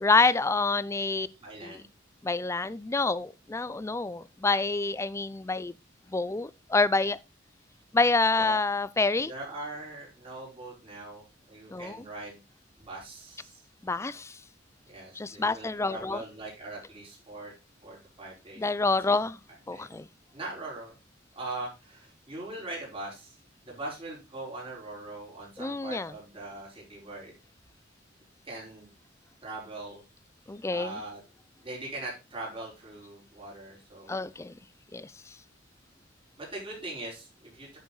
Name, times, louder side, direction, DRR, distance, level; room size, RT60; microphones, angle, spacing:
voice 1, 0.0-1.3 1.6-1.8 2.2-5.7 6.1-7.2 7.9-9.3 11.7-12.0 13.8-14.4 15.2-16.2 18.6-19.4 19.7-20.1 25.6-26.1 30.5-31.0 34.1-34.5 34.9-35.1, left 3 dB, 15° left, 0.4 m, -27 dB
voice 2, 1.4-1.9 8.4-8.6 9.3-12.4 12.8-13.6 14.9-17.5 17.8-18.9 19.2-19.3 19.7-19.8 20.3-21.0 21.3-23.3 23.6-27.3 28.4-28.9 29.4-30.0 30.7-31.2 31.6-34.3 36.4-37.8, right 2 dB, 30° right, 4.6 m, -41 dB
9.3 x 6.5 x 4.0 m
head